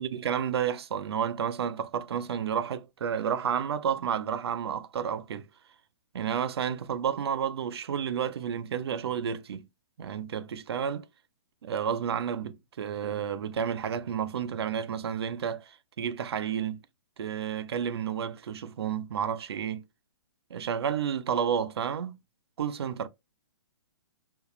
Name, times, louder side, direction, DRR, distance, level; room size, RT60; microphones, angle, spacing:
voice 1, 0.0-5.5 6.1-9.6 10.0-11.1 11.6-16.8 17.2-19.8 20.5-22.2 22.6-23.1, right 8 dB, 65° right, 0.4 m, -31 dB
3.0 x 2.1 x 2.2 m
hypercardioid pair, 175°, 14 cm